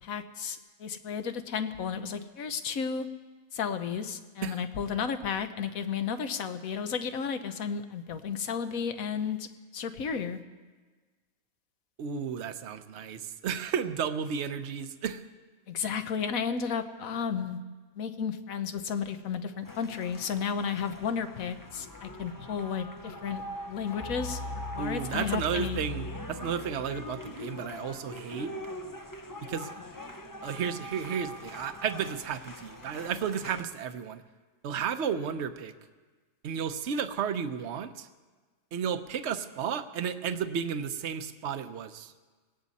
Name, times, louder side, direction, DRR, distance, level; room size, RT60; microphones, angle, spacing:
voice 1, 0.0-3.1 3.5-9.5 9.7-10.4 15.7-17.6 18.0-23.4 23.7-24.4 24.7-25.8, left 6 dB, 70° left, 9 dB, 1.3 m, -33 dB
voice 2, 12.0-15.2 24.8-28.5 29.4-29.7 30.4-34.2 34.6-35.7 36.4-38.1 38.7-42.1, right 7 dB, 55° right, 10 dB, 1.0 m, -33 dB
sound 1, 19.6-33.6, left 1 dB, 20° left, 0.6 m, -41 dB
19.0 x 18.0 x 4.2 m, 1.4 s
omnidirectional pair, 1.5 m